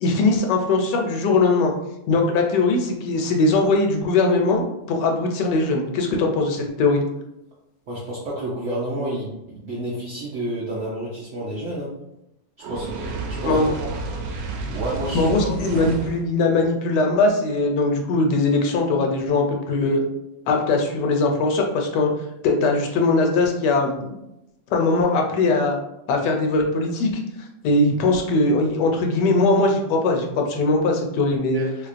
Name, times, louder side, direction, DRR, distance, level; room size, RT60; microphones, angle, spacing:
voice 1, 0.0-1.7 2.1-7.0 13.4-13.7 15.1-20.0 20.5-22.1 22.4-24.1 24.7-25.8 26.1-27.2 27.6-31.6, left 3 dB, 75° left, 2 dB, 1.2 m, -20 dB
voice 2, 7.9-11.9 12.7-13.9 14.7-15.7 31.5-31.7, right 1 dB, 65° right, -5 dB, 0.7 m, -30 dB
Fire, 12.6-16.3, right 3 dB, 90° right, 1.3 m, -31 dB
3.4 x 2.8 x 2.5 m, 0.86 s
omnidirectional pair, 1.9 m